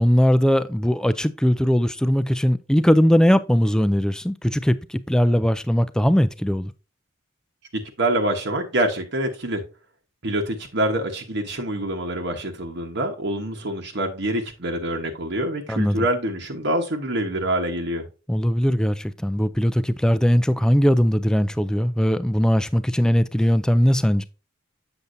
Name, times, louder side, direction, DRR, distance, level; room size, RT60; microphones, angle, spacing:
voice 1, 0.0-6.7 15.7-16.0 18.3-24.2, equal, 5° left, 0.4 m, -20 dB
voice 2, 8.0-9.6 10.2-18.1, right 1 dB, 60° right, 1.1 m, -25 dB
8.1 x 7.1 x 2.6 m
head